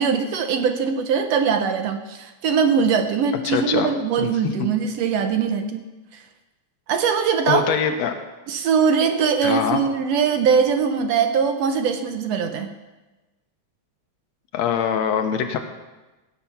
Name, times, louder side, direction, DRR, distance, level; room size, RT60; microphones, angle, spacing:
voice 1, 0.0-5.8 6.1-6.2 6.9-7.6 8.5-12.7, right 6 dB, 70° right, 7 dB, 1.7 m, -21 dB
voice 2, 3.4-3.9 4.2-4.3 7.5-8.1 9.4-9.8 14.5-15.6, left 7 dB, 70° left, 6 dB, 2.1 m, -23 dB
18.0 x 7.8 x 5.7 m, 1.1 s
omnidirectional pair, 3.3 m